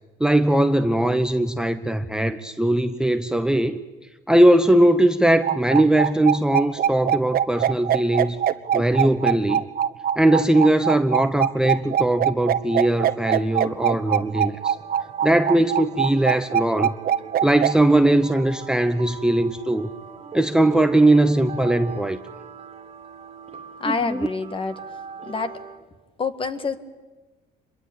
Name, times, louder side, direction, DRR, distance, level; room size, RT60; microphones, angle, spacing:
voice 1, 0.2-3.8 4.3-8.4 8.7-9.6 10.2-14.8 15.2-16.9 17.4-19.9 20.3-22.2 23.9-24.3, right 1 dB, 5° right, 0.9 m, -20 dB
sound 1, 5.4-17.7, right 9 dB, 60° right, 1.1 m, -22 dB
sound 2, 13.5-25.8, right 5 dB, 35° right, 2.3 m, -41 dB
voice 2, 23.8-24.8 25.2-25.6 26.2-26.8, left 4 dB, 30° left, 1.8 m, -27 dB
26.5 x 22.5 x 8.8 m
cardioid pair, 110°, 17 cm